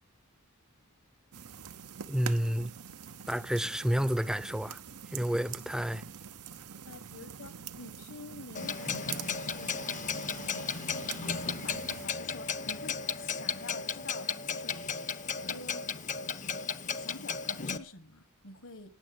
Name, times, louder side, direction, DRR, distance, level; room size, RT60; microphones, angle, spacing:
sound 1, 1.3-12.1, right 7 dB, 85° right, 0.9 m, -45 dB
voice 1, 2.1-2.7 3.3-4.8 5.1-6.0, equal, 5° right, 0.6 m, -30 dB
voice 2, 6.9-10.7 11.3-15.0 15.5-15.9 16.3-18.9, left 3 dB, 60° left, 1.7 m, -49 dB
Clock, 8.6-17.8, left 5 dB, 35° left, 0.9 m, -35 dB
19.0 x 7.5 x 8.0 m
head